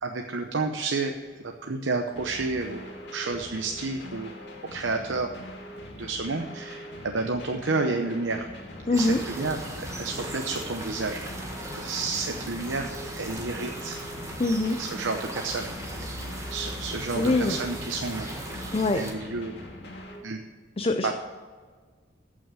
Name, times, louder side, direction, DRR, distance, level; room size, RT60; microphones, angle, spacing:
voice 1, 0.0-1.1 1.4-2.8 3.1-4.3 4.7-5.3 6.0-8.5 8.9-11.3 11.7-14.0 14.8-15.7 16.0-16.2 16.5-18.4 18.9-19.5 20.2-20.4 21.0-21.1, right 3 dB, 80° right, 4 dB, 0.8 m, -30 dB
sound 1, 2.2-20.2, left 1 dB, 60° left, 2.4 m, -43 dB
voice 2, 8.9-9.2 14.4-14.8 17.2-17.6 18.7-19.0 20.8-21.1, left 2 dB, 30° left, 7 dB, 0.5 m, -24 dB
sound 2, 8.9-19.1, right 1 dB, 15° right, 1.7 m, -37 dB
14.0 x 6.2 x 6.2 m, 1.5 s
head